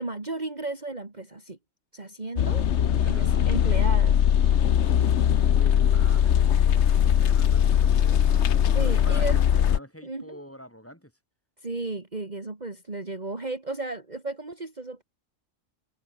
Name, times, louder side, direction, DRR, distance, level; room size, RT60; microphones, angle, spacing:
voice 1, 0.0-1.6 1.9-2.7 3.1-4.2 8.7-9.6 10.0-10.4 11.6-15.0, right 2 dB, 30° right, 2.6 m, -34 dB
sound 1, 2.4-9.8, left 9 dB, 60° left, 1.1 m, -21 dB
voice 2, 2.7-3.7 5.5-8.3 8.6-11.1, equal, 10° left, 6.8 m, -45 dB
omnidirectional pair, 1.4 m